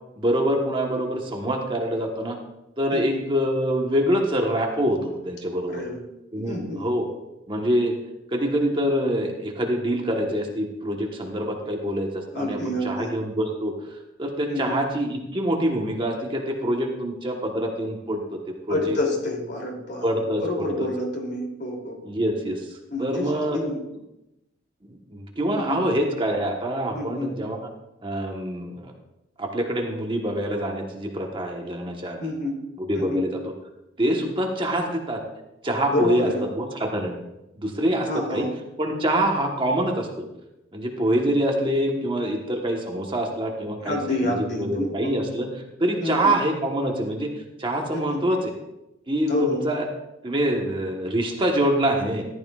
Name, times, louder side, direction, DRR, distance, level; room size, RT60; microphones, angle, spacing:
voice 1, 0.2-2.4 2.8-5.8 6.3-7.0 7.5-7.9 8.3-12.6 12.8-13.7 14.2-19.0 20.0-20.9 22.0-22.7 23.0-23.6 24.8-27.6 28.0-28.9 29.4-32.3 32.8-33.4 34.0-35.2 35.6-37.2 37.6-38.5 38.8-40.2 40.7-44.3 44.6-45.5 45.8-47.3 47.6-48.5 49.1-49.9 50.2-52.3, right 1 dB, 25° right, 1 dB, 1.3 m, -25 dB
voice 2, 5.7-6.0 6.3-6.9 12.3-13.1 14.5-14.8 18.7-20.1 20.4-22.0 22.9-23.8 25.5-25.8 26.9-27.3 32.2-32.6 33.0-33.3 35.9-36.4 38.1-38.5 43.8-45.1 46.0-46.3 47.9-48.2 49.3-49.6, left 1 dB, 60° left, -1 dB, 3.0 m, -28 dB
14.5 x 11.5 x 2.4 m, 0.90 s
head